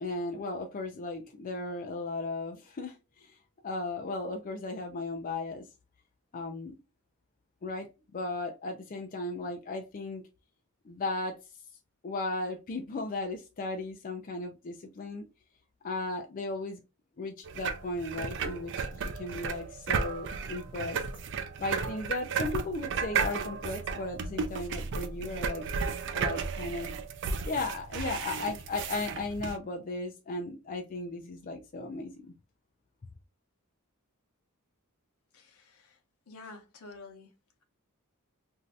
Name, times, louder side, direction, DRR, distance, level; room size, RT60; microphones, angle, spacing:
voice 1, 0.0-3.4 3.6-5.7 6.3-6.8 7.6-10.2 10.8-11.4 12.0-15.2 15.8-16.8 17.2-21.0 21.6-25.6 26.1-26.9 27.5-32.3, left 2 dB, 40° left, 0.4 m, -36 dB
sound 1, 17.4-29.6, right 5 dB, 55° right, 0.4 m, -34 dB
voice 2, 35.3-35.8 36.3-37.3, left 3 dB, 80° left, 0.8 m, -49 dB
2.6 x 2.5 x 3.2 m
head